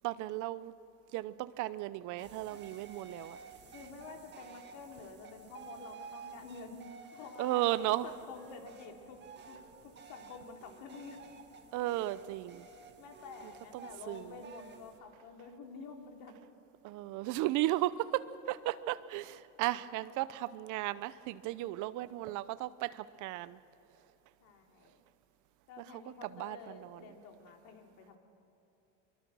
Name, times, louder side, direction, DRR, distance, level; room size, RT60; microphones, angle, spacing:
voice 1, 0.0-0.7 1.1-3.4 7.4-8.0 11.7-12.6 13.7-14.4 16.8-23.6 26.2-27.0, right 16 dB, 50° right, 16 dB, 0.7 m, -35 dB
sound 1, 2.2-15.0, right 5 dB, 25° right, 1.8 m, -53 dB
voice 2, 3.7-6.8 7.1-7.6 8.0-9.2 9.4-11.2 13.0-16.4 24.4-25.0 25.7-28.2, left 5 dB, 55° left, 2 dB, 3.5 m, -49 dB
24.5 x 23.0 x 6.3 m, 3.0 s
supercardioid pair, 125°, 38 cm